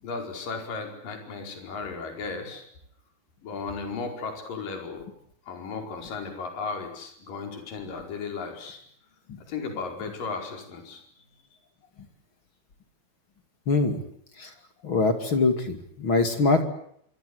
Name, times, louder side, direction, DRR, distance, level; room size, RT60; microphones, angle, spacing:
voice 1, 0.0-2.7 3.4-5.1 5.5-8.8 9.4-11.0, left 4 dB, 55° left, 4 dB, 6.4 m, -35 dB
voice 2, 13.7-14.0 14.4-14.5 14.8-16.6, left 3 dB, 35° left, 7 dB, 2.7 m, -23 dB
25.5 x 25.0 x 8.1 m, 0.68 s
omnidirectional pair, 4.8 m